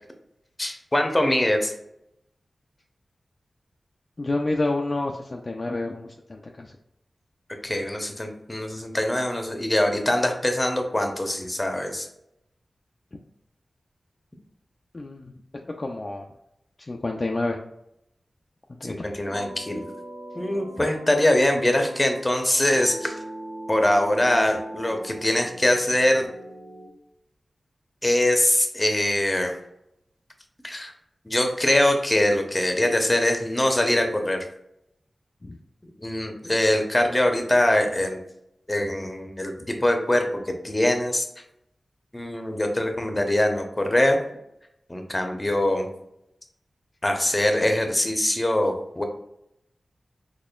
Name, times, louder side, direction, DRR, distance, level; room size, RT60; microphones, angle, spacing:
voice 1, 0.6-1.7 7.6-12.1 19.0-19.8 20.3-23.2 23.7-26.3 28.0-29.6 30.6-30.9 31.2-34.4 36.0-38.2 38.7-41.3 42.1-44.2 44.9-45.9 47.0-49.0, left 1 dB, 25° left, 4 dB, 0.8 m, -23 dB
voice 2, 4.2-6.7 14.9-15.3 15.8-16.3 16.9-17.6 18.8-18.9 35.4-35.6, left 2 dB, 45° left, 1 dB, 0.4 m, -28 dB
sound 1, 19.3-26.9, right 1 dB, 40° right, 0.8 m, -40 dB
4.2 x 2.9 x 2.3 m, 0.79 s
cardioid pair, 50°, 0 cm